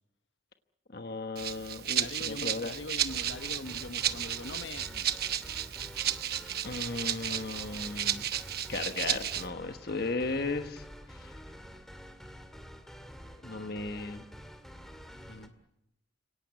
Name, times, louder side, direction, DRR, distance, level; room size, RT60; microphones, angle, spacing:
voice 1, 0.9-2.7 6.6-8.2 8.7-11.3 13.4-14.3, left 3 dB, 55° left, 7 dB, 1.3 m, -36 dB
Rattle (instrument), 1.4-9.5, right 10 dB, 55° right, 1.0 m, -33 dB
voice 2, 1.9-5.1 15.3-15.5, left 2 dB, 75° left, 8 dB, 1.4 m, -42 dB
sound 1, 3.1-15.5, equal, ahead, 2.0 m, -48 dB
30.0 x 18.0 x 8.3 m, 0.86 s
head